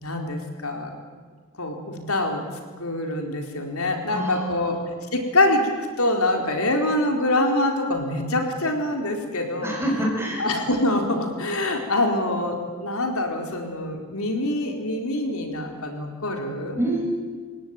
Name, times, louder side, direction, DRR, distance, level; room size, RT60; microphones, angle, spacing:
voice 1, 0.0-0.9 1.6-2.4 2.8-4.8 5.1-9.8 10.4-16.8, left 1 dB, 75° left, 3 dB, 4.3 m, -25 dB
voice 2, 4.1-4.8 9.6-10.4 16.8-17.1, right 1 dB, 10° right, -2 dB, 6.2 m, -26 dB
29.0 x 17.5 x 9.1 m, 1.5 s
head